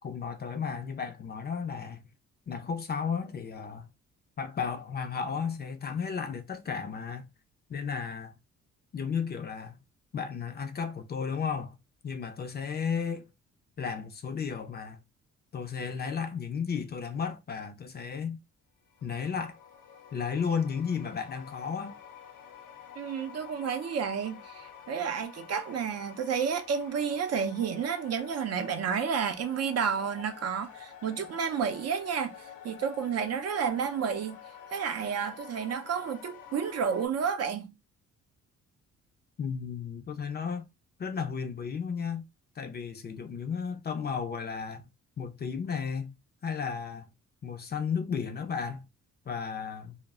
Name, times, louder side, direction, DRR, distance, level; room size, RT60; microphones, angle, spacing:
voice 1, 0.0-2.0 2.5-3.9 4.4-7.3 7.7-8.4 8.9-9.8 10.1-11.8 12.0-13.3 13.8-15.0 15.5-18.4 19.0-19.6 20.1-22.0 39.4-40.7 41.0-42.3 42.6-44.8 45.2-46.1 46.4-47.1 47.4-48.9 49.3-50.0, left 6 dB, 35° left, 0.4 m, -34 dB
sound 1, 18.9-37.1, left 8 dB, 90° left, 0.7 m, -49 dB
voice 2, 23.0-34.4 34.7-37.7, right 7 dB, 55° right, 0.5 m, -31 dB
2.0 x 2.0 x 3.4 m
cardioid pair, 90°, 30 cm